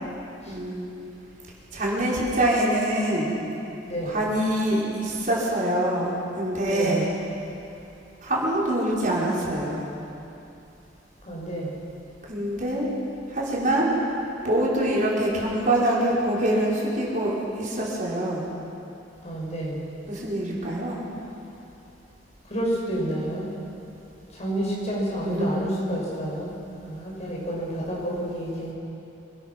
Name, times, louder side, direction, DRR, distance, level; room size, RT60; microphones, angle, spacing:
voice 1, 0.4-0.9 1.7-3.3 4.0-7.1 8.2-9.9 12.3-12.9 13.3-18.4 20.0-21.0 25.2-25.7, right 1 dB, 45° right, -5 dB, 5.1 m, -25 dB
voice 2, 3.9-4.2 6.6-7.0 11.2-11.7 19.2-19.8 22.5-23.5 24.3-26.5 26.8-28.7, right 1 dB, 40° left, -4 dB, 6.8 m, -29 dB
26.5 x 21.0 x 6.2 m, 2.8 s
head